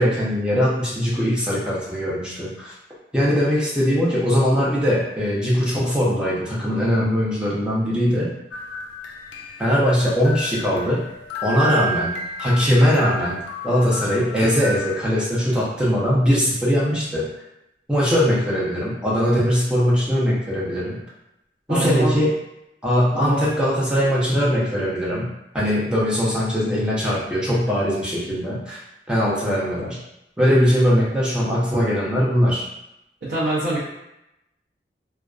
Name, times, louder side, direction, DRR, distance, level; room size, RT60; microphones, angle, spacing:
voice 1, 0.0-2.7 3.1-8.3 9.6-11.0 11.4-12.1 12.4-17.3 17.9-21.0 21.7-22.3 22.8-25.3 25.5-28.8 29.1-30.0 30.4-32.6, equal, 5° right, -7 dB, 0.6 m, -20 dB
sound 1, 8.5-14.8, right 1 dB, 90° left, 0.3 m, -32 dB
voice 2, 21.7-22.2 23.1-23.4 33.2-33.8, right 1 dB, 80° right, -10 dB, 0.7 m, -24 dB
2.5 x 2.2 x 2.3 m, 0.86 s
head